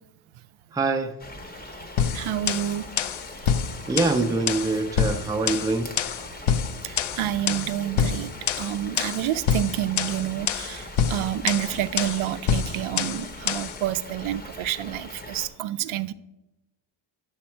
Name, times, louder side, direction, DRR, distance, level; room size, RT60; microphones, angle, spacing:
voice 1, 0.7-1.2 3.9-5.9, right 3 dB, 10° right, 0.4 m, -24 dB
sound 1, 1.2-15.5, left 1 dB, 20° left, 0.7 m, -41 dB
sound 2, 2.0-13.8, left 8 dB, 70° left, 0.6 m, -27 dB
voice 2, 2.1-2.8 6.8-8.3 8.6-16.1, right 12 dB, 80° right, 0.5 m, -28 dB
8.4 x 7.2 x 4.4 m
wide cardioid pair, 150°, 49 cm